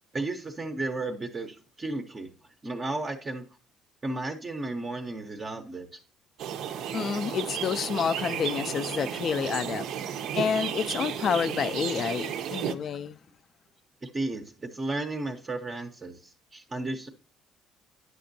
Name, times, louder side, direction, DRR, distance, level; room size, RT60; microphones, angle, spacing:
voice 1, 0.1-2.3 2.6-3.4 4.0-6.0 14.0-17.1, right 2 dB, 20° right, 0.6 m, -34 dB
sound 1, 6.4-12.7, right 9 dB, 70° right, 0.5 m, -33 dB
voice 2, 6.9-9.9 10.3-13.2, left 7 dB, 40° left, 0.3 m, -29 dB
9.3 x 6.0 x 2.6 m
cardioid pair, 145°, 0 cm